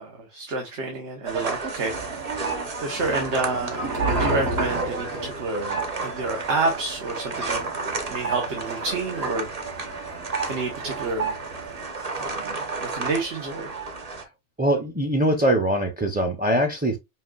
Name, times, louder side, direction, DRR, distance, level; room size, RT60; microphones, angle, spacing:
voice 1, 0.0-2.3 2.8-3.9 4.2-7.6 8.1-9.5 10.4-11.4 11.9-13.7, right 3 dB, 85° right, 1.4 m, -29 dB
sound 1, 1.3-14.2, right 4 dB, 35° right, 0.9 m, -32 dB
sound 2, 1.8-11.9, right 2 dB, 65° right, 1.4 m, -33 dB
voice 2, 14.6-17.0, right 1 dB, 10° right, 0.5 m, -22 dB
5.6 x 2.8 x 2.3 m
omnidirectional pair, 1.1 m